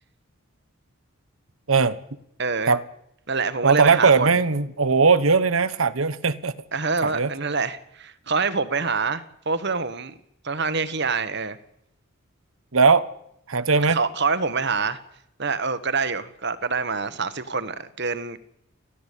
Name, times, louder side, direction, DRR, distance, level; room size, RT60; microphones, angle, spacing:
voice 1, 2.4-2.7 3.3-4.3 6.7-10.1 10.4-11.6 13.9-15.0 15.4-18.4, right 4 dB, 50° right, 1.4 m, -26 dB
voice 2, 3.6-6.6 7.0-7.3 12.7-13.1 13.5-14.0, right 4 dB, 70° right, 1.1 m, -19 dB
25.5 x 15.5 x 8.6 m
head